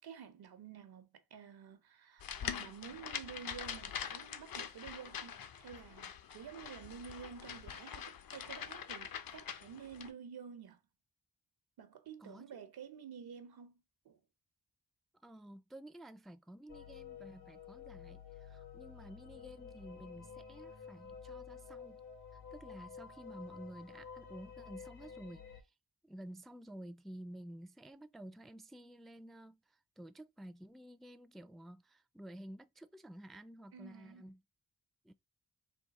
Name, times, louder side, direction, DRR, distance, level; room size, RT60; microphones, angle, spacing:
voice 1, 0.0-10.8 11.8-14.2 33.7-34.3, right 7 dB, 80° right, 0.8 m, -51 dB
sound 1, 2.2-10.1, left 8 dB, 65° left, 0.7 m, -44 dB
voice 2, 12.2-12.6 15.2-22.0 22.3-25.7 26.0-34.4 35.0-35.1, right 1 dB, ahead, 0.4 m, -52 dB
sound 2, 16.7-25.6, left 7 dB, 85° left, 1.3 m, -51 dB
3.7 x 2.3 x 4.0 m
cardioid pair, 50°, 37 cm